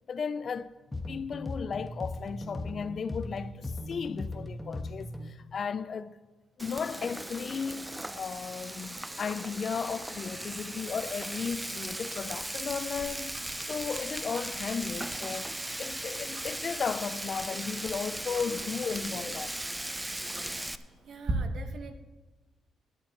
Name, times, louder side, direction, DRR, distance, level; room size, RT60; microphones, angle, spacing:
voice 1, 0.1-6.2 6.6-13.4 13.7-19.6, left 6 dB, 50° left, 0.4 m, -35 dB
sound 1, 0.9-5.4, left 2 dB, 10° left, 1.3 m, -38 dB
Frying (food), 6.6-20.8, right 1 dB, 10° right, 0.5 m, -38 dB
Tick-tock, 13.0-21.3, right 2 dB, 45° right, 2.0 m, -45 dB
voice 2, 21.1-22.0, right 5 dB, 65° right, 1.1 m, -45 dB
17.0 x 10.5 x 2.9 m
cardioid pair, 90°, 0 cm